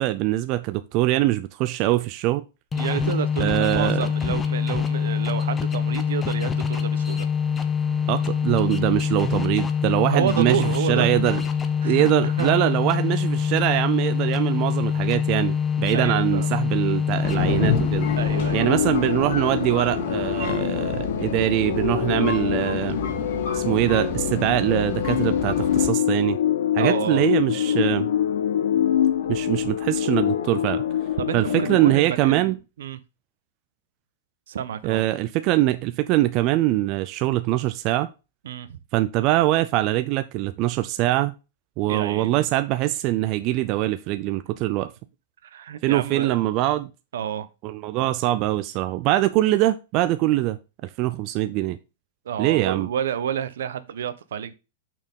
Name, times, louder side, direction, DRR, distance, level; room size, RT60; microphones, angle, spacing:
voice 1, 0.0-2.4 3.4-4.0 8.1-11.4 11.8-18.1 18.5-23.0 23.5-26.4 26.7-28.1 29.3-30.8 31.3-32.6 34.8-38.1 38.9-41.3 41.8-44.9 45.8-46.9 47.6-50.6 50.8-51.8 52.4-52.9, right 16 dB, 30° right, 0.4 m, -23 dB
sound 1, 2.7-18.8, left 7 dB, 10° left, 0.6 m, -24 dB
voice 2, 2.8-7.3 10.1-11.1 11.8-12.8 15.9-16.7 18.2-18.8 26.8-27.3 31.2-33.0 34.5-35.0 38.4-38.8 41.9-42.5 45.4-46.4 47.1-47.5 52.2-54.5, right 9 dB, 70° right, 0.9 m, -29 dB
sound 2, 17.2-25.9, left 4 dB, 50° left, 1.8 m, -29 dB
sound 3, 18.0-31.9, left 10 dB, 65° left, 0.8 m, -25 dB
6.6 x 6.1 x 3.7 m
supercardioid pair, 175°, 0 cm